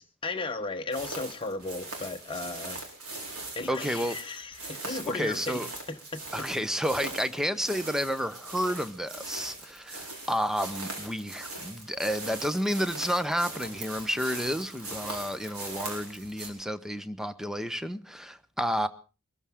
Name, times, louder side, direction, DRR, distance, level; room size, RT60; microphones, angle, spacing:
voice 1, 0.0-2.8 3.6-6.2, left 3 dB, 25° left, 1.0 m, -35 dB
sound 1, 0.9-16.5, right 2 dB, 70° right, 4.4 m, -40 dB
voice 2, 3.7-4.2 4.9-5.7 6.3-18.9, equal, ahead, 0.7 m, -31 dB
23.0 x 14.0 x 3.6 m
head